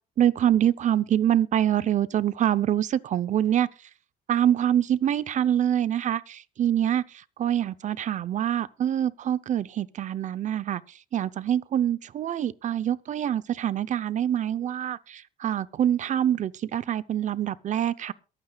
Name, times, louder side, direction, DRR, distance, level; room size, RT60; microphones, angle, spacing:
voice 1, 0.2-3.7 4.3-18.1, right 10 dB, 45° right, 0.7 m, -25 dB
22.5 x 9.0 x 2.3 m
cardioid pair, 110°, 17 cm